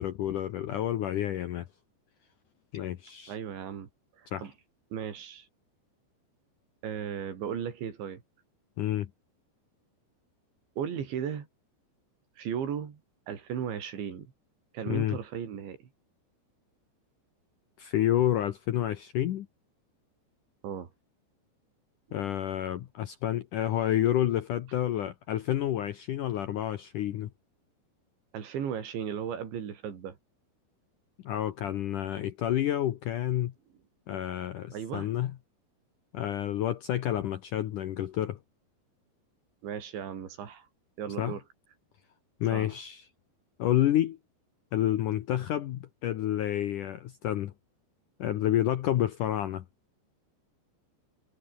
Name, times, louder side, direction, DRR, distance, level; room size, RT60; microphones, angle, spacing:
voice 1, 0.0-1.7 2.7-3.3 4.3-4.5 8.8-9.1 14.9-15.2 17.8-19.5 22.1-27.3 31.2-33.5 34.1-35.3 36.1-38.4 41.2-41.3 42.4-43.0 43.6-44.2 44.7-47.5 48.2-49.6, left 12 dB, 70° left, 2.0 m, -29 dB
voice 2, 3.3-3.9 4.2-4.5 4.9-5.5 6.8-8.2 10.8-11.5 12.4-13.0 13.3-14.3 14.7-15.8 20.6-20.9 28.3-30.2 34.7-35.1 39.6-40.7 41.0-41.4 42.5-42.7, right 8 dB, 85° right, 5.9 m, -36 dB
omnidirectional pair, 5.1 m